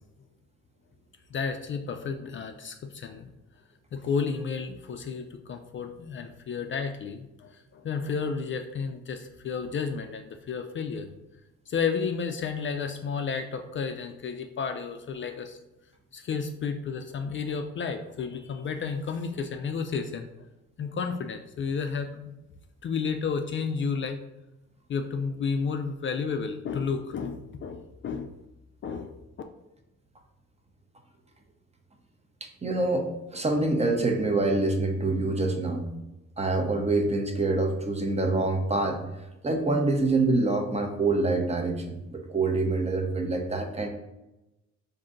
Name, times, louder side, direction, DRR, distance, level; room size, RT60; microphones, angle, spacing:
voice 1, 1.3-3.3 3.9-11.1 11.7-15.6 16.1-20.3 20.8-22.1 22.8-24.2 24.9-28.3 28.8-29.1, left 5 dB, 40° left, 6 dB, 0.4 m, -32 dB
voice 2, 32.4-35.9 36.4-39.0 39.4-43.9, right 2 dB, 20° right, 3 dB, 0.6 m, -26 dB
3.7 x 2.6 x 3.8 m, 0.97 s
cardioid pair, 90°, 30 cm